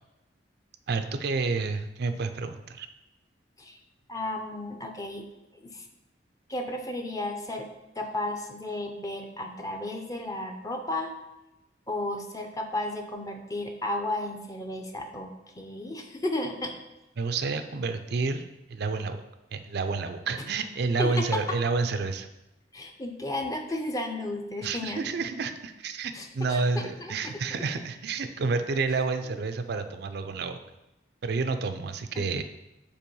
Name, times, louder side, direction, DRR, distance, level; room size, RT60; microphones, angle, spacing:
voice 1, 0.9-2.9 17.2-19.2 19.5-22.3 24.6-30.6 31.2-32.4, right 4 dB, 60° right, 9 dB, 0.4 m, -29 dB
voice 2, 4.1-5.2 5.5-5.9 6.5-7.7 8.0-11.1 11.9-16.7 21.0-21.4 22.7-25.0 26.1-27.4 32.1-32.3, left 1 dB, 20° left, 4 dB, 0.6 m, -33 dB
5.5 x 4.3 x 5.4 m, 0.96 s
head